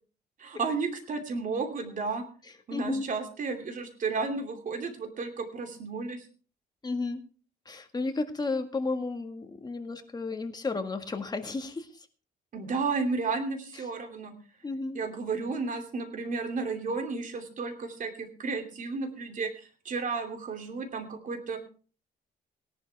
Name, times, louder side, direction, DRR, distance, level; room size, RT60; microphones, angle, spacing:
voice 1, 0.4-2.2 2.7-6.3 12.5-14.3 14.9-21.6, right 4 dB, 50° right, 4 dB, 2.8 m, -33 dB
voice 2, 2.7-3.1 6.8-7.2 7.7-11.9 14.6-15.0, left 3 dB, 25° left, 6 dB, 1.7 m, -32 dB
17.5 x 11.5 x 3.4 m, 0.39 s
cardioid pair, 120°, 17 cm